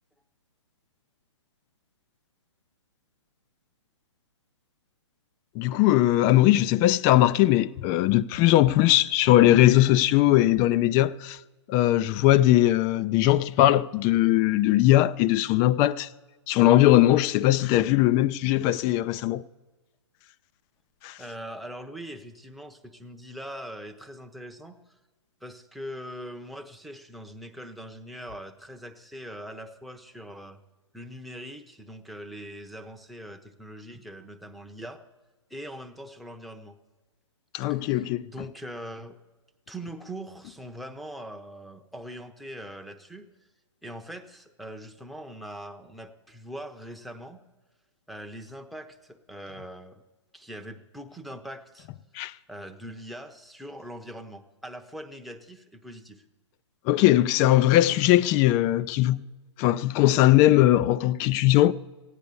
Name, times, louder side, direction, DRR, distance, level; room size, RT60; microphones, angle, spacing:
voice 1, 5.6-11.4 11.7-16.1 16.5-19.4 21.0-21.2 37.5-38.3 52.1-52.3 56.9-59.2 59.6-61.7, left 14 dB, 20° left, 0.3 m, -20 dB
voice 2, 21.2-25.0 25.4-30.6 30.9-35.0 35.5-36.8 37.7-39.2 39.7-43.3 43.8-47.4 48.1-50.0 50.3-51.9 52.5-56.2, equal, ahead, 0.7 m, -42 dB
15.0 x 9.7 x 6.9 m
figure-of-eight pair, 130°, 16 cm